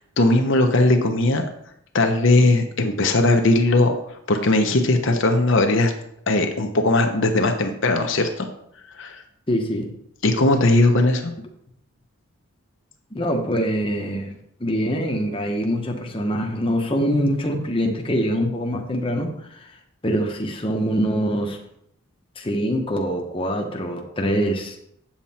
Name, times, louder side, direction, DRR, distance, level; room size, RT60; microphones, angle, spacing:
voice 1, 0.0-1.4 1.9-3.9 4.3-5.9 6.3-8.5 9.0-9.2 10.2-11.3, left 2 dB, 60° left, 4 dB, 0.9 m, -19 dB
voice 2, 9.5-9.9 13.1-19.5 20.0-21.6 22.4-24.8, equal, 25° left, 1 dB, 1.1 m, -24 dB
8.8 x 7.4 x 4.3 m, 0.74 s
head